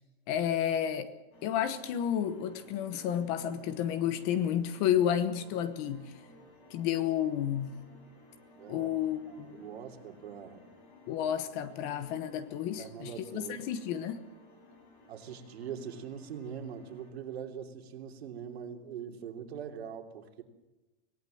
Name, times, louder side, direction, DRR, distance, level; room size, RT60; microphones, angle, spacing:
voice 1, 0.3-1.1 1.4-6.1 6.7-7.8 8.7-9.7 11.1-14.2, left 10 dB, 25° left, 1.0 m, -31 dB
sound 1, 1.3-17.1, left 2 dB, 50° left, 7.2 m, -57 dB
voice 2, 8.5-8.9 9.3-10.6 12.8-13.7 15.1-20.4, right 8 dB, 75° right, 3.4 m, -42 dB
25.5 x 18.5 x 7.8 m
supercardioid pair, 175°, 32 cm